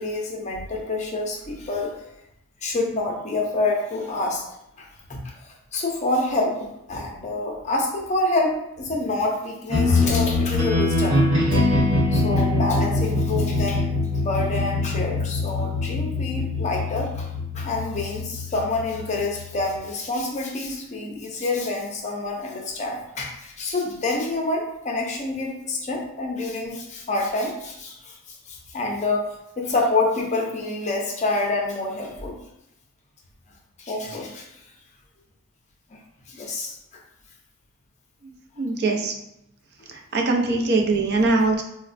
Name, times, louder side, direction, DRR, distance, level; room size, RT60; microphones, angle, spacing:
voice 1, 0.0-2.0 2.6-4.4 4.8-4.9 5.2-11.2 12.1-17.3 17.5-32.4 33.8-34.5 35.9-36.0 36.3-36.8, left 2 dB, 35° left, 0 dB, 0.5 m, -27 dB
sound 1, 9.7-19.8, left 2 dB, 85° right, 1.0 m, -23 dB
voice 2, 38.6-39.1 39.9-41.6, right 3 dB, 50° right, 2 dB, 0.5 m, -22 dB
4.0 x 2.1 x 2.5 m, 0.82 s
head